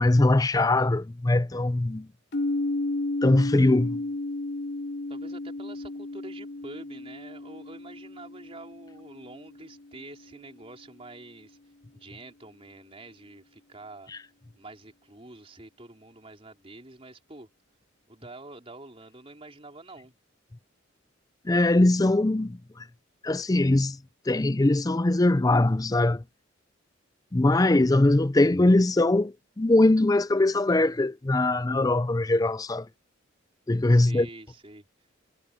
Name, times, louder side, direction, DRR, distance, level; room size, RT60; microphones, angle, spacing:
voice 1, 0.0-2.1 3.2-4.0 21.5-22.6 23.2-24.0 24.3-26.2 27.3-32.9 33.7-34.3, left 2 dB, 20° left, 0.5 m, -21 dB
sound 1, 2.3-10.1, left 2 dB, 60° left, 2.7 m, -33 dB
voice 2, 5.1-11.6 11.9-14.1 14.5-17.5 18.1-20.1 33.9-34.9, right 2 dB, 30° right, 4.2 m, -46 dB
head